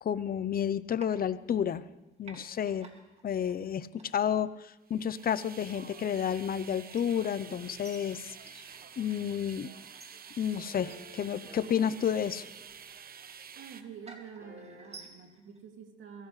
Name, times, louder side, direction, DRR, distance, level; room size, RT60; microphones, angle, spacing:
voice 1, 0.0-1.9 2.2-2.9 3.2-8.4 9.0-9.7 10.4-12.5, left 8 dB, 50° left, 15 dB, 0.7 m, -31 dB
sound 1, 1.0-1.9 2.2-15.6, right 3 dB, 30° right, 2.3 m, -56 dB
sound 2, 4.9-13.8, right 7 dB, 50° right, 1.0 m, -49 dB
sound 3, 7.4-13.6 14.4-15.0, equal, 15° right, 6.1 m, -56 dB
voice 2, 13.6-16.3, right 7 dB, 75° right, 3 dB, 2.6 m, -48 dB
24.0 x 16.5 x 3.3 m, 1.0 s
cardioid pair, 90°, 20 cm